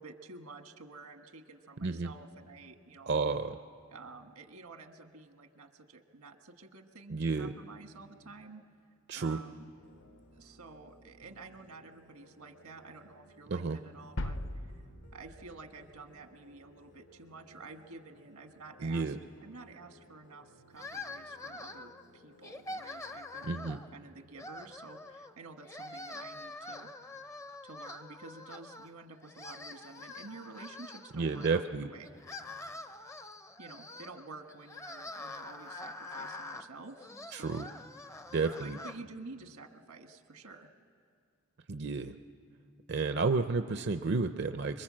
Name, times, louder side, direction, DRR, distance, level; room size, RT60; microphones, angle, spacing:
voice 1, 0.0-3.1 3.9-8.6 9.2-9.7 10.3-14.8 15.1-19.2 19.4-26.9 27.6-32.1 33.6-37.7 38.6-40.7, right 3 dB, 85° right, 6 dB, 1.5 m, -50 dB
voice 2, 1.8-2.1 3.1-3.6 7.1-7.5 9.1-9.4 13.5-13.8 18.8-19.2 23.4-23.8 31.1-31.9 37.3-37.7 38.3-38.8 41.7-42.2 42.9-44.8, right 4 dB, 50° right, 8 dB, 0.5 m, -31 dB
sound 1, 9.7-24.0, right 1 dB, 85° left, 3.0 m, -61 dB
sound 2, 14.2-16.2, left 1 dB, 55° left, 0.8 m, -39 dB
sound 3, 20.8-22.0 22.4-23.9 24.3-25.3 25.6-28.9 29.2-31.5 32.0-39.0, left 2 dB, 15° left, 0.5 m, -45 dB
25.0 x 23.5 x 7.5 m, 2.2 s
head